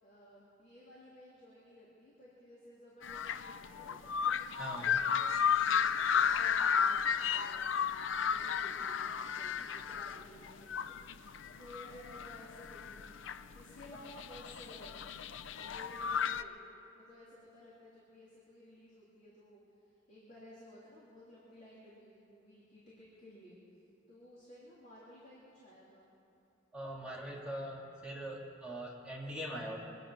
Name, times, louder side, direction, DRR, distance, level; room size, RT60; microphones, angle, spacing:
voice 1, 0.0-13.2 13.5-15.1 15.4-16.6 16.9-23.6 24.1-26.1 26.9-27.5, equal, 40° left, -8 dB, 3.1 m, -56 dB
sound 1, 3.0-16.4, left 7 dB, 75° left, 0.5 m, -33 dB
voice 2, 4.6-5.0 26.7-29.8, right 1 dB, 5° right, -6 dB, 2.7 m, -42 dB
23.5 x 9.9 x 6.0 m, 2.9 s
head